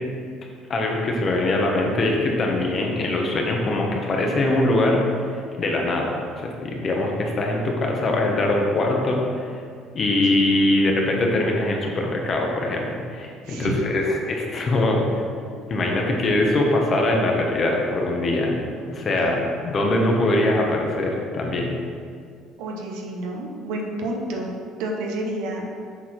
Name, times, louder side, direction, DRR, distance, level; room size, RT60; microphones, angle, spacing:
voice 1, 0.7-9.6 9.9-15.2 15.7-18.6 18.9-21.7, left 2 dB, 40° left, 0 dB, 1.1 m, -22 dB
voice 2, 13.4-13.8 22.6-24.5 24.8-25.7, right 1 dB, 85° right, 0 dB, 1.0 m, -29 dB
7.3 x 4.2 x 4.3 m, 2.1 s
cardioid pair, 105°, 0 cm